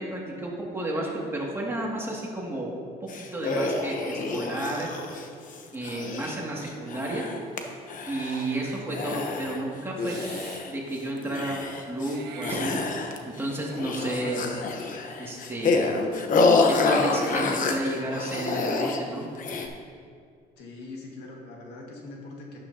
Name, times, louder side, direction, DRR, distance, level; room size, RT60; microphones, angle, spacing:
voice 1, 0.0-2.7 3.3-4.9 5.7-7.2 8.1-10.1 10.7-12.8 13.2-14.5 15.2-15.9 16.6-19.3, right 1 dB, 15° right, -3 dB, 2.1 m, -32 dB
sound 1, 3.1-7.6 7.9-8.5 8.9-9.6 10.0-10.9 11.2-12.2 12.4-13.4 13.7-19.0 19.4-19.7, left 3 dB, 50° left, 1.0 m, -27 dB
Meow / Hiss, 8.1-8.8 10.0-10.7 12.0-13.2, right 5 dB, 75° right, 1.0 m, -42 dB
voice 2, 20.6-22.6, left 2 dB, 80° left, -1 dB, 1.8 m, -42 dB
11.5 x 8.9 x 2.8 m, 2.2 s
cardioid pair, 110°, 17 cm